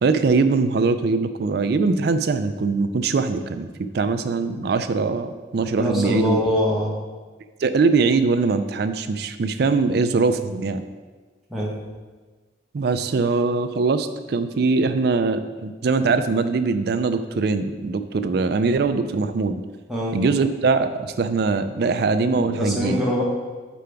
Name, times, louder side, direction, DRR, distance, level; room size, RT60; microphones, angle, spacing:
voice 1, 0.0-3.7 3.9-6.4 7.6-10.8 12.7-19.6 20.1-23.0, right 4 dB, 55° right, 9 dB, 0.4 m, -22 dB
voice 2, 5.7-6.9 11.5-11.7 19.9-20.2 22.2-23.2, left 1 dB, ahead, -5 dB, 1.1 m, -23 dB
6.6 x 5.1 x 3.4 m, 1.4 s
head